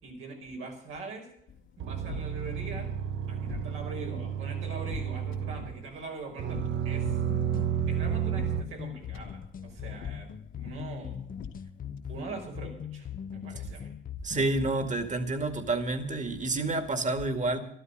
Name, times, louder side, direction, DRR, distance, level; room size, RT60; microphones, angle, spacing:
voice 1, 0.0-1.3 1.8-2.9 3.3-7.2 7.9-11.2 12.1-13.9, right 3 dB, 85° right, 0 dB, 5.2 m, -42 dB
sound 1, 1.5-12.0, left 7 dB, 90° left, 2.0 m, -46 dB
sound 2, 1.8-5.9 6.4-8.6, right 9 dB, 70° right, 0.9 m, -31 dB
sound 3, 7.0-15.1, left 9 dB, 45° left, 0.7 m, -41 dB
voice 2, 14.2-17.6, right 2 dB, 40° right, 9 dB, 2.2 m, -29 dB
12.5 x 12.5 x 6.7 m, 0.69 s
cardioid pair, 90°, 20 cm